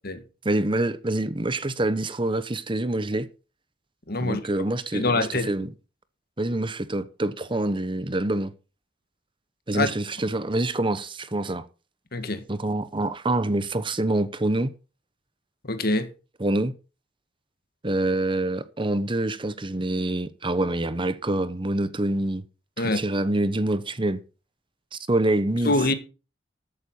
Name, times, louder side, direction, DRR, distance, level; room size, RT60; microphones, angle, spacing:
voice 1, 0.4-3.3 4.2-5.7 6.4-8.5 9.7-11.7 12.5-14.7 16.4-16.7 17.8-22.4 22.8-24.2 24.9-25.7, right 1 dB, 25° right, 1.0 m, -26 dB
voice 2, 4.1-4.4 4.9-5.5 9.7-9.9 12.1-12.4 15.6-16.1 22.8-23.0 25.7-25.9, left 2 dB, 55° left, 1.9 m, -24 dB
14.0 x 8.7 x 4.5 m
head